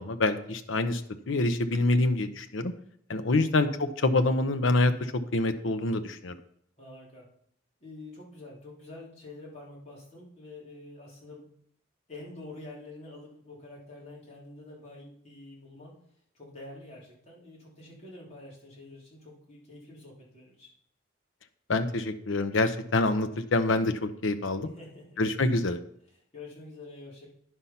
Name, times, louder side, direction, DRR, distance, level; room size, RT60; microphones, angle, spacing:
voice 1, 0.0-2.7 3.1-6.4 21.7-24.7 25.2-25.8, left 2 dB, 80° left, 9 dB, 0.8 m, -26 dB
voice 2, 6.8-7.3 7.8-11.5 12.1-16.0 16.3-20.7 24.7-25.2 26.3-27.3, left 2 dB, 35° left, -5 dB, 3.5 m, -47 dB
9.8 x 5.6 x 5.8 m, 0.66 s
head